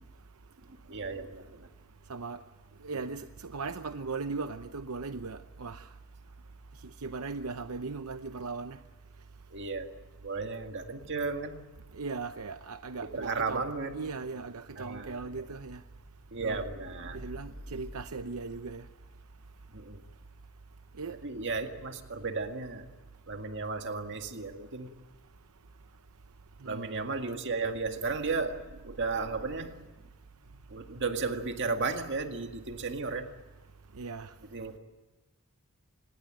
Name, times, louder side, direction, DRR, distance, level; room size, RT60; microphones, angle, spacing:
voice 1, 0.9-1.7 9.5-9.9 10.2-11.6 13.1-13.9 14.8-15.2 16.3-17.3 19.7-20.0 21.2-22.9 23.3-24.9 26.6-29.9 30.5-33.3 34.5-34.8, right 4 dB, 55° right, 2.0 m, -34 dB
voice 2, 2.8-5.8 7.0-8.8 12.0-13.7 13.9-15.8 16.4-16.6 17.1-18.8 21.0-21.2 26.6-27.0 34.0-34.3, right 4 dB, 80° right, 0.8 m, -38 dB
26.5 x 21.0 x 8.9 m
head